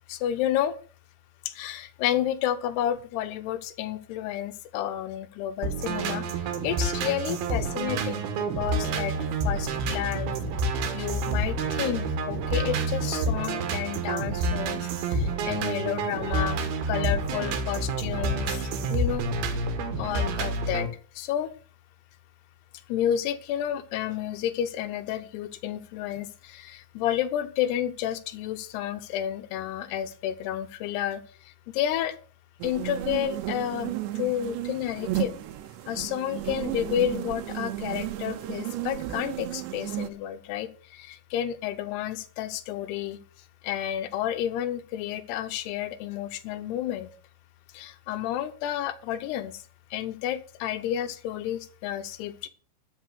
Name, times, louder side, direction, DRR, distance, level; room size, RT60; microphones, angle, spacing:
voice 1, 0.1-0.8 1.5-9.1 9.4-10.4 10.7-16.6 16.9-19.7 20.0-20.9 21.1-21.5 22.9-32.2 32.6-35.4 35.9-43.2 43.6-47.1 47.7-49.6 49.9-52.5, left 11 dB, 75° left, 10 dB, 2.9 m, -31 dB
sound 1, 5.6-20.9, right 3 dB, 65° right, 3.2 m, -28 dB
sound 2, 32.6-40.1, right 14 dB, 85° right, 3.1 m, -33 dB
12.5 x 6.9 x 6.5 m, 0.40 s
omnidirectional pair, 5.0 m